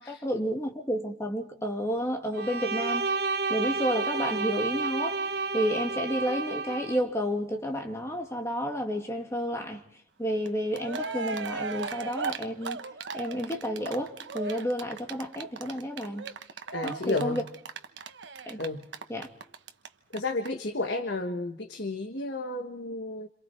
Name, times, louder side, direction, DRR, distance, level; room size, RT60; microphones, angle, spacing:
voice 1, 0.0-3.1 3.5-5.2 5.5-9.8 10.2-12.8 13.1-16.3 16.8-17.4 18.4-18.6 19.1-19.3, equal, 15° left, 2.6 m, -31 dB
Bowed string instrument, 2.3-7.0, right 4 dB, 60° right, 1.0 m, -30 dB
Cheering, 10.5-10.6 10.7-19.9 20.1-20.2 20.4-20.5, right 4 dB, 75° right, 1.2 m, -37 dB
voice 2, 16.7-17.4 18.6-18.9 20.1-23.3, left 2 dB, 65° left, 1.5 m, -32 dB
29.0 x 27.0 x 4.6 m
head